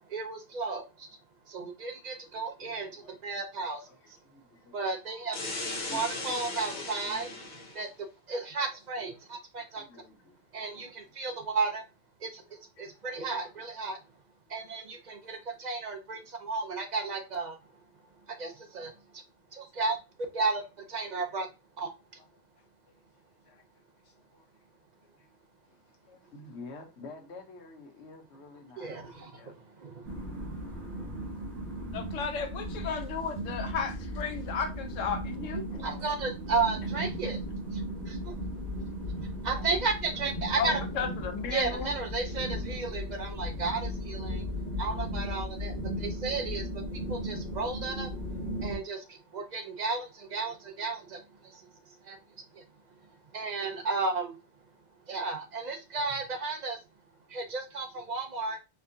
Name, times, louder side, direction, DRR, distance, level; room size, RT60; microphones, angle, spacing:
voice 1, 0.1-1.1 1.5-4.2 4.7-5.4 5.7-7.3 7.7-7.9 8.3-9.8 10.5-11.8 12.2-14.0 14.5-17.6 18.3-19.2 19.5-20.0 20.3-20.6 20.9-21.5 21.8-21.9 28.8-31.3 35.8-37.4 38.0-38.3 39.4-40.8 41.5-44.4 44.8-48.1 48.6-52.2 52.5-52.6 53.3-54.4 55.1-56.8 57.3-58.6, right 4 dB, 50° right, 0.6 m, -34 dB
voice 2, 3.8-4.8 5.9-7.5 7.9-8.0 9.6-10.4 10.7-11.1 12.4-12.5 12.9-13.0 15.1-15.5 21.3-21.4 22.2-22.3 22.6-23.0 23.4-24.6 25.0-25.3 25.7-29.0 29.3-29.6 30.1-30.3 37.0-37.3, left 3 dB, 65° left, 1.1 m, -51 dB
sound 1, 5.3-7.8, left 2 dB, 40° left, 1.0 m, -37 dB
sound 2, 30.0-48.8, equal, 65° right, 1.5 m, -36 dB
voice 3, 31.9-35.8 40.6-41.9, left 6 dB, 85° left, 1.1 m, -34 dB
4.2 x 2.2 x 2.7 m
omnidirectional pair, 1.3 m